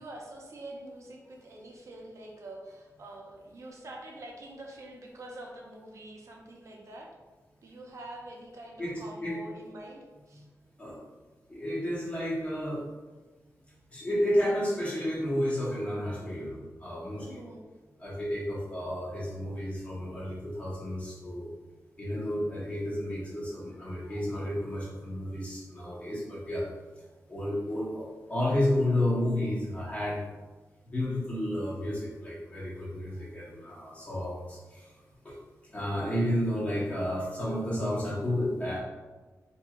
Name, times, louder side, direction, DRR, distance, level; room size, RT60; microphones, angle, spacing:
voice 1, 0.0-7.1 7.6-10.5 17.2-17.6, right 1 dB, 55° right, 0 dB, 0.7 m, -45 dB
voice 2, 8.8-9.4 10.8-11.0 11.5-12.8 13.9-17.4 18.0-21.5 22.0-26.7 27.3-30.2 30.9-34.9 35.2-35.3 35.7-38.8, left 1 dB, 20° left, -7 dB, 1.1 m, -31 dB
4.6 x 3.0 x 2.4 m, 1.3 s
wide cardioid pair, 180°, 6 cm